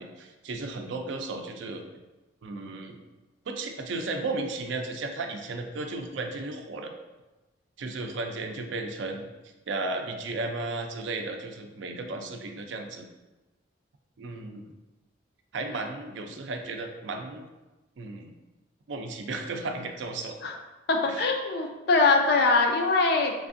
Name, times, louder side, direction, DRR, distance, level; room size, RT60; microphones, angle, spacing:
voice 1, 0.0-1.9 2.4-3.0 3.5-6.9 7.8-9.3 9.7-13.1 14.2-14.7 15.5-17.5 18.0-18.3 18.9-20.4 21.1-21.2, right 3 dB, 70° right, 4 dB, 0.4 m, -34 dB
voice 2, 20.9-23.5, left 3 dB, 55° left, 3 dB, 0.4 m, -23 dB
3.3 x 3.3 x 2.5 m, 1.1 s
head